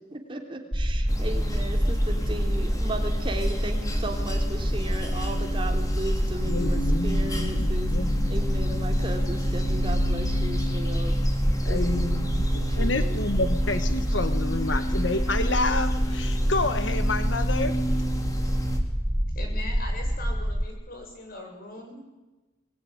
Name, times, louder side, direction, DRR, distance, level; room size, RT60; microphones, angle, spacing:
voice 1, 0.0-11.2 11.6-12.2 12.8-13.2, right 1 dB, 30° right, 2 dB, 3.4 m, -36 dB
sound 1, 0.7-20.7, equal, 5° right, 0.8 m, -26 dB
sound 2, 1.1-18.8, equal, 20° left, 3.1 m, -33 dB
voice 2, 6.4-8.4 11.6-17.7, left 2 dB, 90° left, 9 dB, 1.5 m, -29 dB
voice 3, 19.3-22.1, left 1 dB, 55° left, 2 dB, 7.6 m, -40 dB
23.0 x 20.5 x 10.0 m, 1.1 s
head